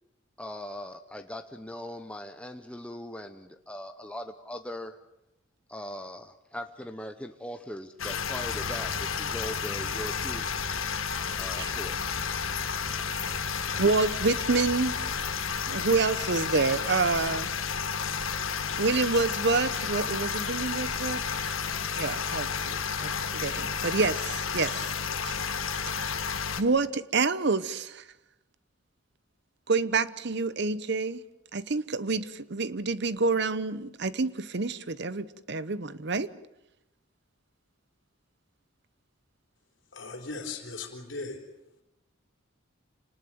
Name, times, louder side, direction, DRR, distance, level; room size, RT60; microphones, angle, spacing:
voice 1, 0.4-5.0 5.7-10.6 11.4-12.2, equal, 5° left, 0.8 m, -40 dB
sound 1, 8.0-26.6, left 6 dB, 85° left, 1.6 m, -31 dB
sound 2, 8.5-15.5, left 1 dB, 30° left, 3.1 m, -46 dB
voice 2, 13.8-15.0 15.7-17.5 18.8-21.6 21.9-24.9 25.2-25.5 25.9-26.2 26.6-28.1 29.7-31.2 31.5-36.3, right 4 dB, 55° right, 0.9 m, -28 dB
voice 3, 39.9-41.4, left 3 dB, 65° left, 4.2 m, -38 dB
27.5 x 19.5 x 7.9 m
head